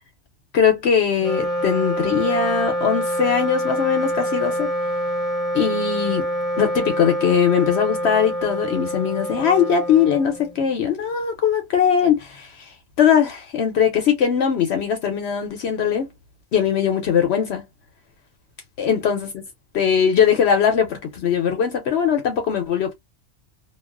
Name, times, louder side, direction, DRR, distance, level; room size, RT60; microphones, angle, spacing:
voice 1, 0.5-4.7 5.5-6.3 6.6-16.1 16.5-17.6 18.8-19.4 19.7-22.9, left 7 dB, 65° left, 0.8 m, -20 dB
Wind instrument woodwind instrument, 1.1-10.7, equal, ahead, 0.7 m, -26 dB
2.4 x 2.3 x 2.3 m
omnidirectional pair, 1.2 m